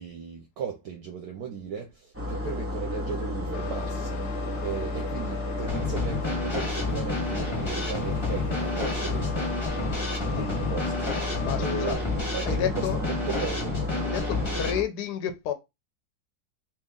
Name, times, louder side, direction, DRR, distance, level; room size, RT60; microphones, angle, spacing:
voice 1, 0.0-9.5 10.3-10.9 11.3-13.8, right 6 dB, 70° right, 0.9 m, -36 dB
sound 1, 2.1-14.8, left 1 dB, 15° right, 0.6 m, -32 dB
sound 2, 3.5-11.9, left 9 dB, 90° left, 1.3 m, -41 dB
Drum kit / Snare drum, 5.7-14.7, left 3 dB, 20° left, 0.8 m, -31 dB
voice 2, 11.4-12.0 12.4-13.0 14.0-15.5, left 9 dB, 70° left, 1.0 m, -31 dB
3.0 x 2.7 x 3.6 m
omnidirectional pair, 2.0 m